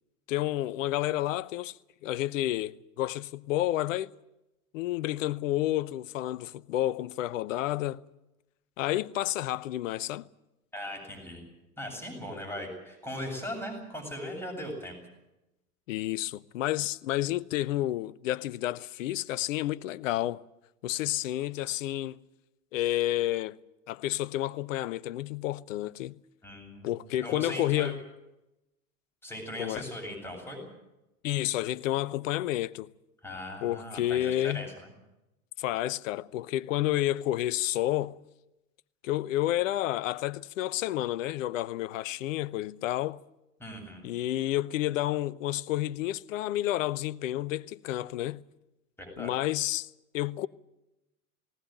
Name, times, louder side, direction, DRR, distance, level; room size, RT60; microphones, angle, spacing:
voice 1, 0.3-1.8 2.0-4.1 4.7-8.0 8.8-10.3 15.9-20.4 20.8-22.2 22.7-23.6 23.9-26.2 26.8-28.0 29.6-29.9 31.2-32.9 33.6-34.7 35.6-38.2 39.0-43.2 44.0-48.4 49.2-49.9 50.1-50.5, left 14 dB, 55° left, 0.9 m, -30 dB
voice 2, 10.7-11.4 11.8-14.9 26.4-26.9 27.2-27.9 29.2-30.6 33.2-34.9 43.6-44.0 49.0-49.3, equal, 5° left, 7.8 m, -39 dB
19.0 x 19.0 x 9.1 m
hypercardioid pair, 95°, 45 cm